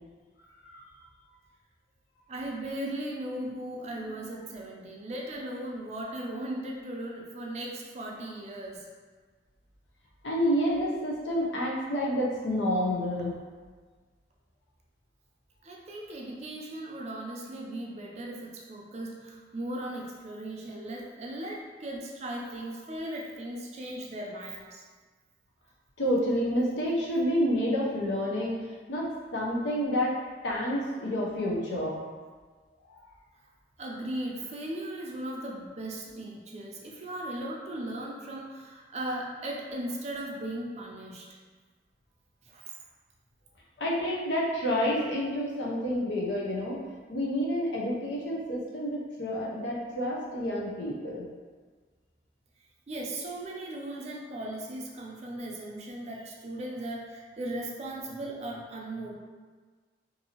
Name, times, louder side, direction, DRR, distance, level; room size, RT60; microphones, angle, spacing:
voice 1, 2.3-8.9 15.6-24.8 33.8-41.3 42.5-42.8 52.9-59.1, right 1 dB, 35° right, -1 dB, 0.4 m, -37 dB
voice 2, 10.2-13.3 26.0-28.5 28.9-30.1 30.4-32.0 43.8-46.8 47.1-51.3, equal, 80° left, -4 dB, 0.6 m, -29 dB
2.6 x 2.6 x 2.8 m, 1.4 s
head